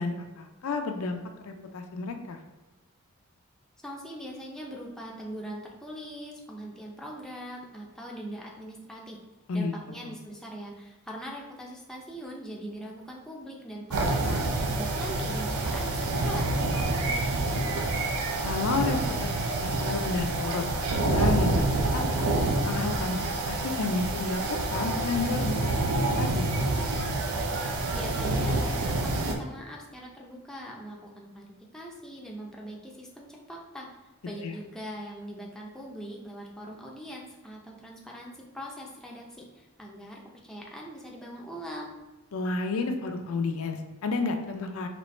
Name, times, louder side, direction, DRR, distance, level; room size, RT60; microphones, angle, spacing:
voice 1, 0.0-2.4 9.5-9.7 10.0-10.1 18.4-22.3 22.6-26.5 34.4-34.5 42.3-44.9, left 3 dB, 70° left, 5 dB, 0.4 m, -31 dB
voice 2, 3.8-9.2 9.5-17.7 27.9-33.9 34.2-41.9, equal, ahead, -3 dB, 0.5 m, -41 dB
sound 1, 13.9-29.3, right 2 dB, 80° right, 0.6 m, -27 dB
4.2 x 3.0 x 3.1 m, 1.2 s
head